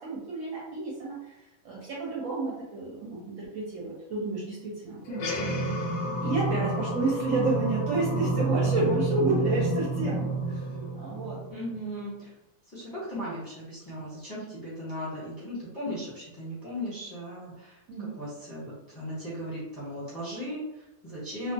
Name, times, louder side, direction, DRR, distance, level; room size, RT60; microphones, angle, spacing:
voice 1, 0.0-5.3 6.2-11.4 17.9-18.2, right 2 dB, 65° right, -4 dB, 0.9 m, -30 dB
sound 1, 5.1-11.8, right 2 dB, 70° left, 0.9 m, -29 dB
voice 2, 5.4-5.8 11.5-12.3 12.7-17.8 18.2-21.5, equal, 15° left, -9 dB, 0.8 m, -37 dB
2.4 x 2.3 x 2.5 m, 0.91 s
omnidirectional pair, 1.7 m